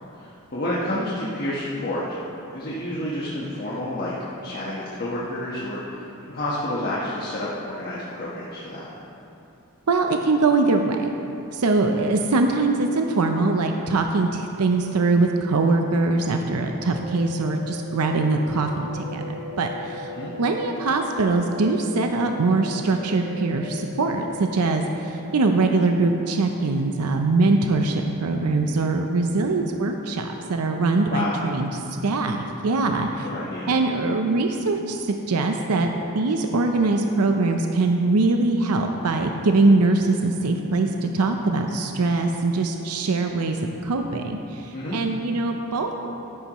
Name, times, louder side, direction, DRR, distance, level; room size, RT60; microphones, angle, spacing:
voice 1, 0.1-2.0 2.5-4.1 4.4-8.9 20.1-20.3 31.1-31.4 33.2-33.7 44.7-44.9, left 1 dB, 45° left, -7 dB, 1.3 m, -29 dB
voice 2, 9.9-11.0 11.5-19.2 19.6-20.1 20.4-31.7 32.0-33.3 33.7-35.9 36.1-43.6 43.8-46.0, right 3 dB, 85° right, 4 dB, 0.6 m, -22 dB
sound 1, 16.5-28.2, left 2 dB, 65° right, 1.6 m, -39 dB
12.5 x 11.0 x 3.1 m, 2.9 s
head